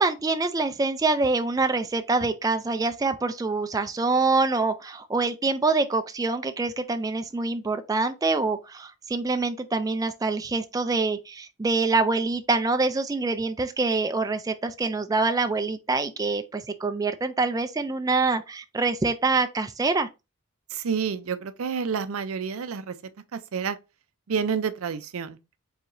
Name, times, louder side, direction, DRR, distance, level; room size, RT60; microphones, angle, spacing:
voice 1, 0.0-20.1, right 3 dB, 15° right, 0.3 m, -25 dB
voice 2, 20.7-23.0 23.3-23.8 24.3-25.4, right 6 dB, 90° right, 0.5 m, -29 dB
4.6 x 4.0 x 2.6 m
head